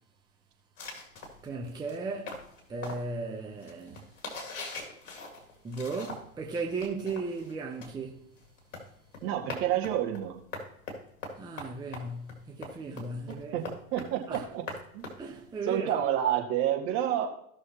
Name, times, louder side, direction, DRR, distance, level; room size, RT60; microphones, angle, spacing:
sound 1, 0.8-6.4 6.7-15.8, left 3 dB, 55° left, 3.3 m, -43 dB
voice 1, 1.4-4.1 5.6-8.2 11.4-13.6 14.3-14.5 15.2-16.1, right 3 dB, 10° right, 0.8 m, -36 dB
voice 2, 9.2-10.3 13.3-13.6 13.9-14.6 14.9-15.1 15.7-17.3, right 11 dB, 40° right, 2.1 m, -29 dB
17.0 x 6.3 x 3.0 m
hypercardioid pair, 110°, 45 cm